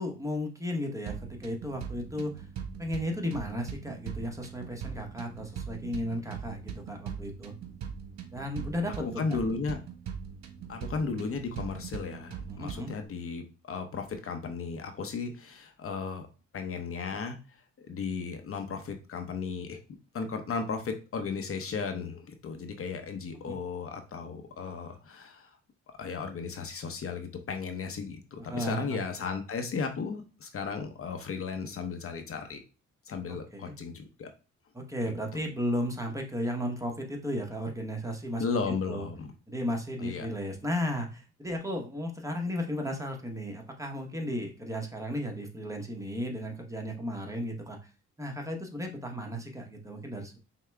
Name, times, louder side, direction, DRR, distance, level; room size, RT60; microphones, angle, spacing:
voice 1, 0.0-2.4 2.8-7.5 8.3-9.4 12.5-12.9 23.3-23.6 28.4-29.0 33.3-33.7 34.7-38.4 38.9-39.1 39.5-47.9 48.2-50.4, equal, 10° right, 2 dB, 1.0 m, -34 dB
sound 1, 1.1-13.1, right 7 dB, 65° right, 1.0 m, -41 dB
voice 2, 9.0-9.8 10.7-16.3 16.5-17.4 17.8-19.8 20.1-25.6 26.0-32.6 33.1-34.3 38.4-39.3 40.0-40.3, left 5 dB, 45° left, 6 dB, 0.8 m, -35 dB
5.7 x 2.2 x 3.4 m, 0.32 s
cardioid pair, 90°, 30 cm